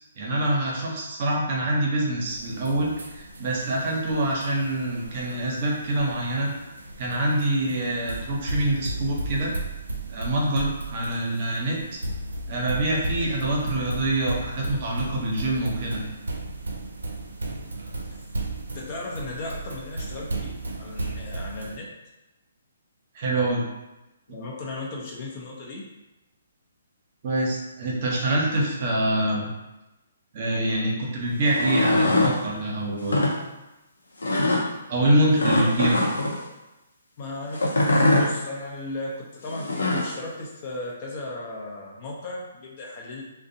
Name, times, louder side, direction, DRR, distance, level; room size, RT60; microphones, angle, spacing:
voice 1, 0.2-6.5 7.0-9.5 10.1-11.8 12.5-16.0 23.1-23.6 27.2-29.5 30.3-33.3 34.9-36.0, right 1 dB, 45° right, -2 dB, 0.7 m, -25 dB
sound 1, 2.3-21.8, right 2 dB, 80° right, 0.4 m, -35 dB
voice 2, 18.7-20.5 20.8-21.9 24.3-25.9 35.6-35.7 37.2-43.2, left 2 dB, 40° left, -2 dB, 0.6 m, -36 dB
sound 2, 31.4-32.4 33.0-33.3 34.2-34.6 35.4-36.4 37.5-38.3 39.5-40.1, left 1 dB, 80° left, 0.6 m, -22 dB
2.5 x 2.0 x 2.7 m, 1.0 s
hypercardioid pair, 140°, 0 cm